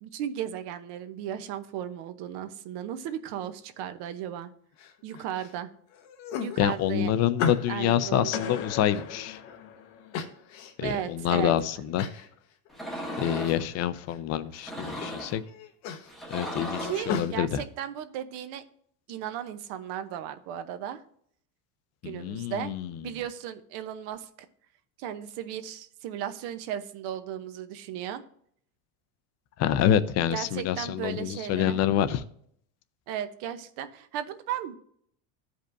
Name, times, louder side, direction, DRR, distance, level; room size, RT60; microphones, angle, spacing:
voice 1, 0.0-4.5 5.0-5.7 6.4-7.1 7.7-8.6 10.8-11.5 16.8-18.6 19.1-21.0 22.0-22.7 23.0-24.3 25.0-28.2 30.3-31.8 33.1-34.8, right 10 dB, 60° right, 10 dB, 0.9 m, -35 dB
sound 1, 4.8-5.5 5.9-7.9 8.4-9.6 10.1-11.0 11.4-11.5 12.0-12.3 12.7-13.3 13.6-14.2 14.6-15.1 15.4-17.3, left 6 dB, 85° left, 1.3 m, -36 dB
voice 2, 6.6-9.4 10.8-12.1 13.2-15.4 16.3-17.6 22.0-22.9 29.6-32.2, left 10 dB, 35° left, 13 dB, 0.5 m, -27 dB
sound 2, 8.3-10.4, left 8 dB, 70° left, 1.0 m, -39 dB
sound 3, 12.7-13.6 14.5-15.4 16.1-17.1, equal, ahead, 1.0 m, -36 dB
14.0 x 5.3 x 2.6 m, 0.65 s
cardioid pair, 150°, 46 cm